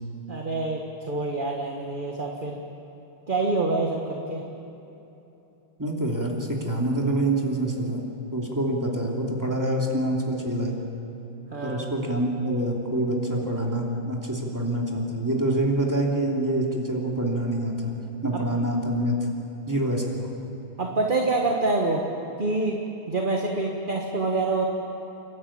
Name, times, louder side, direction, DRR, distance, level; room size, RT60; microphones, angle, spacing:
voice 1, 0.3-2.6 3.3-4.4 11.5-11.8 18.3-18.4 20.8-22.0 22.4-22.8 23.1-24.7, right 3 dB, 30° right, 1 dB, 1.4 m, -26 dB
voice 2, 5.8-8.0 8.3-10.7 11.6-17.9 18.2-19.2 19.7-20.3, right 1 dB, 10° right, -1 dB, 2.7 m, -26 dB
29.0 x 12.5 x 8.7 m, 3.0 s
omnidirectional pair, 2.2 m